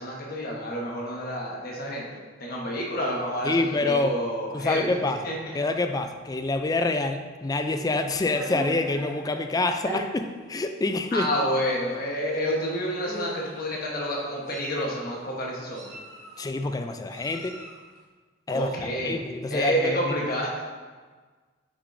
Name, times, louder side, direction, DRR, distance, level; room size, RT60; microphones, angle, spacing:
voice 1, 0.0-2.1 2.4-4.9 5.2-5.3 11.1-15.9 18.5-19.2 19.5-20.7, equal, 50° left, -3 dB, 1.2 m, -29 dB
voice 2, 3.4-4.2 4.5-5.2 5.5-11.3 16.4-17.6 18.5-18.7 19.0-20.1, left 2 dB, 20° left, 7 dB, 0.3 m, -26 dB
Meow, 7.5-9.1 9.8-10.0 10.8-11.0 11.3-11.5 12.6-12.7 13.0-13.6 14.2-14.9 15.7-16.5 17.1-17.8, right 1 dB, 20° right, 1.4 m, -38 dB
6.3 x 6.3 x 2.6 m, 1.4 s
head